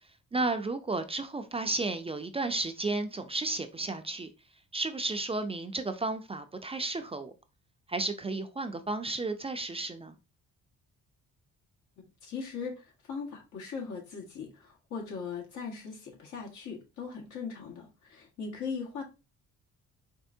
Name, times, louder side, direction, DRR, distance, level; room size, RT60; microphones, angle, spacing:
voice 1, 0.3-4.3 4.7-7.3 7.9-10.2, right 2 dB, 20° right, 0.5 m, -33 dB
voice 2, 12.2-19.0, left 5 dB, 75° left, 1.6 m, -39 dB
4.4 x 3.3 x 2.7 m
cardioid pair, 90°, 30 cm